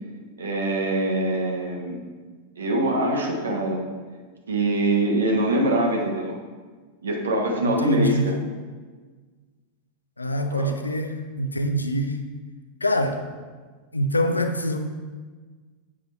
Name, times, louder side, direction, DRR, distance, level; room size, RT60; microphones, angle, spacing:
voice 1, 0.4-2.0 2.6-3.8 4.5-6.4 7.0-8.3 10.4-10.7 14.3-14.4, right 1 dB, 70° right, 0 dB, 1.1 m, -24 dB
voice 2, 7.6-8.4 10.2-12.2 12.8-13.2 13.9-14.8, equal, 80° left, 6 dB, 0.5 m, -25 dB
7.8 x 5.0 x 4.2 m, 1.4 s
figure-of-eight pair, 90°, 0 cm